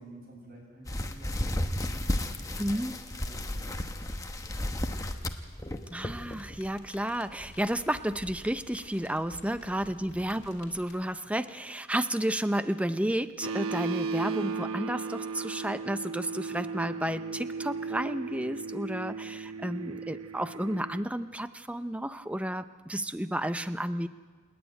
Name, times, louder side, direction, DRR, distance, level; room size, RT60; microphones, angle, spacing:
voice 1, 0.0-3.9 5.7-6.0 9.4-9.9, right 1 dB, 45° right, -1 dB, 7.4 m, -52 dB
sound 1, 0.9-6.6 7.0-7.2 7.8-7.9 8.3-8.4, left 1 dB, 15° left, 0.9 m, -33 dB
voice 2, 2.6-3.0 5.9-24.1, right 1 dB, 5° right, 11 dB, 0.5 m, -32 dB
sound 2, 6.0-11.0, left 1 dB, 55° left, 3.0 m, -51 dB
sound 3, 13.4-21.0, right 5 dB, 90° right, 1.0 m, -36 dB
29.0 x 10.0 x 9.2 m, 1.5 s
head